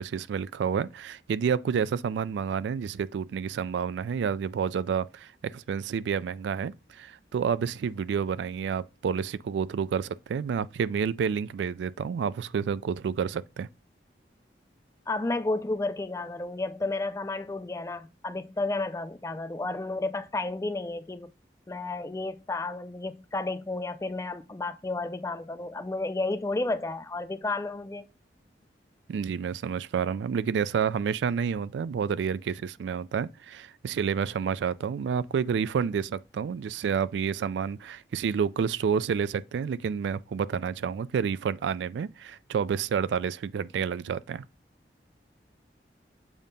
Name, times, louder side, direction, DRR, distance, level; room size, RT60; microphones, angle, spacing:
voice 1, 0.0-13.7 29.1-44.4, right 7 dB, 80° right, 0.3 m, -29 dB
voice 2, 15.1-21.3 21.7-28.1, left 2 dB, 15° left, 0.3 m, -32 dB
7.1 x 2.7 x 5.1 m
head